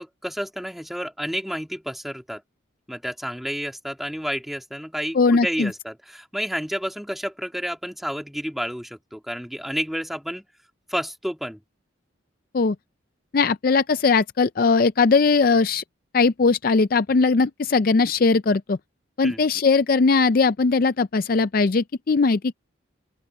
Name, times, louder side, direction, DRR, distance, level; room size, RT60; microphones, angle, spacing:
voice 1, 0.0-2.4 2.9-10.5 10.9-11.6 19.2-19.4, equal, ahead, 2.4 m, -30 dB
voice 2, 5.1-5.7 12.5-12.8 13.3-15.8 16.1-18.8 19.2-22.5, left 4 dB, 45° left, 0.4 m, -19 dB
open air
head